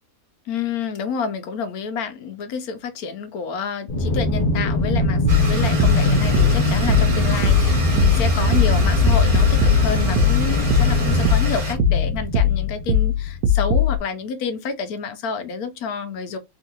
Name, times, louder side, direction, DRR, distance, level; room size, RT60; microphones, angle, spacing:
voice 1, 0.5-16.4, left 6 dB, 90° left, 1.2 m, -29 dB
Aircraft, 3.9-13.3, left 1 dB, 40° left, 0.9 m, -21 dB
Domestic sounds home sounds, 5.3-11.7, right 2 dB, 40° right, 1.2 m, -31 dB
sound 1, 5.3-14.0, left 6 dB, 85° right, 1.1 m, -20 dB
3.7 x 2.6 x 2.8 m
omnidirectional pair, 1.5 m